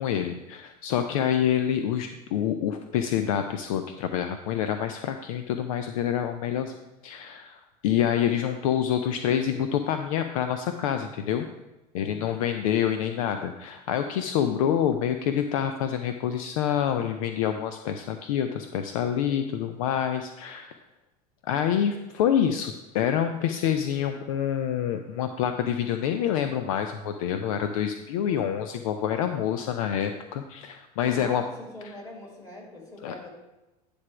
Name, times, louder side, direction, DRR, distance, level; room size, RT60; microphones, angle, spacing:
voice 1, 0.0-6.7 7.0-11.5 11.9-20.7 21.5-31.4 33.0-33.1, left 9 dB, 60° left, 8 dB, 0.5 m, -27 dB
voice 2, 12.0-12.4 31.0-33.3, left 1 dB, 15° left, -2 dB, 2.6 m, -42 dB
9.5 x 3.4 x 6.0 m, 1.0 s
figure-of-eight pair, 75°, 20 cm